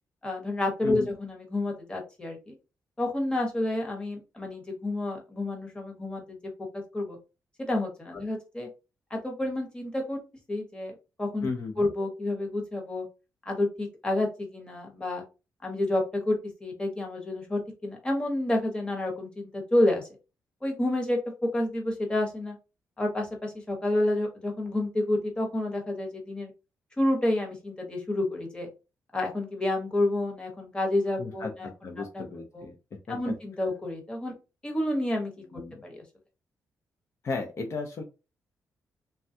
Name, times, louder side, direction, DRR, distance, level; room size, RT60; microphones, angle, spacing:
voice 1, 0.2-2.5 3.0-6.4 6.9-7.2 7.6-8.7 9.1-10.2 10.5-11.5 11.8-13.0 13.5-15.2 15.6-16.4 16.6-20.1 20.6-22.6 23.0-26.5 27.0-28.7 29.1-31.7 32.0-32.2 32.5-32.7 33.1-34.3 34.6-35.3 35.8-36.0, left 1 dB, 15° left, 1 dB, 1.0 m, -29 dB
voice 2, 11.4-11.9 31.2-32.7 33.1-33.3 35.5-35.7 37.2-38.0, left 4 dB, 50° left, 3 dB, 0.5 m, -35 dB
3.3 x 2.3 x 2.7 m, 0.29 s
wide cardioid pair, 135°, 6 cm